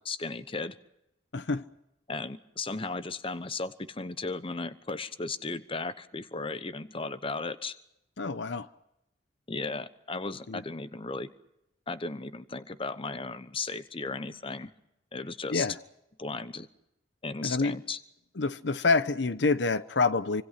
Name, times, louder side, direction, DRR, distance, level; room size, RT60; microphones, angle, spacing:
voice 1, 0.0-0.8 2.1-7.7 9.5-11.3 11.9-14.7 15.1-15.7 16.2-16.7 17.2-18.0, left 3 dB, 30° left, 1.0 m, -35 dB
voice 2, 1.3-1.6 8.2-8.7 10.5-10.6 15.5-15.8 17.4-17.8 18.4-20.4, left 3 dB, 70° left, 0.8 m, -27 dB
26.0 x 25.0 x 5.9 m
head